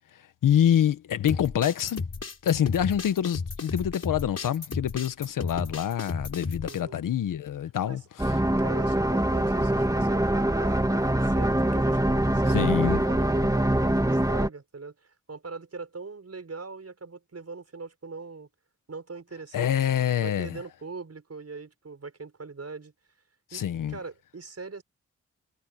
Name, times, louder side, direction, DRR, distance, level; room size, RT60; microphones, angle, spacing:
voice 1, 0.4-2.0 2.4-8.0 12.5-13.0 19.5-20.6 23.5-24.0, left 10 dB, 90° left, 1.4 m, -26 dB
sound 1, 1.3-6.8, left 4 dB, 50° left, 4.9 m, -34 dB
voice 2, 6.6-7.0 7.9-8.0 8.6-18.5 18.9-19.7 20.2-22.9 23.5-24.8, right 4 dB, 50° right, 7.4 m, -41 dB
sound 2, 8.2-14.5, right 1 dB, 10° right, 3.3 m, -24 dB
supercardioid pair, 40°, 31 cm